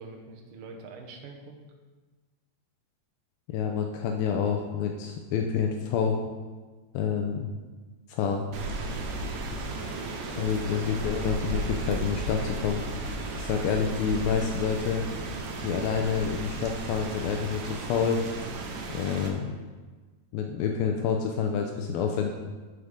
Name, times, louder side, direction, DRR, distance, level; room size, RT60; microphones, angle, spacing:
voice 1, 0.0-1.6 9.3-9.7 10.2-11.0, right 3 dB, 70° right, 1 dB, 2.2 m, -46 dB
voice 2, 3.5-6.2 6.9-7.5 8.1-8.4 10.4-12.8 13.4-15.0 15.6-18.2 18.9-19.4 20.3-22.3, left 6 dB, 90° left, 3 dB, 2.0 m, -28 dB
Rain, 8.5-19.3, right 2 dB, 90° right, 3.2 m, -34 dB
7.9 x 6.9 x 5.1 m, 1.4 s
omnidirectional pair, 4.9 m